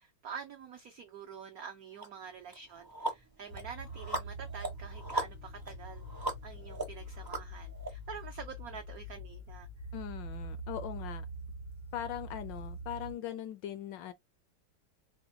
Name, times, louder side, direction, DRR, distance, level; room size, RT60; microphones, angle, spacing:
voice 1, 0.0-6.0 6.4-9.7, right 7 dB, 80° right, 0.8 m, -47 dB
sound 1, 2.0-2.1 2.5-7.9, right 1 dB, 30° right, 0.4 m, -39 dB
sound 2, 3.5-13.1, right 1 dB, 90° left, 2.2 m, -44 dB
voice 2, 9.9-11.3 11.9-14.1, left 11 dB, 75° left, 1.1 m, -40 dB
4.3 x 2.1 x 3.7 m
omnidirectional pair, 2.3 m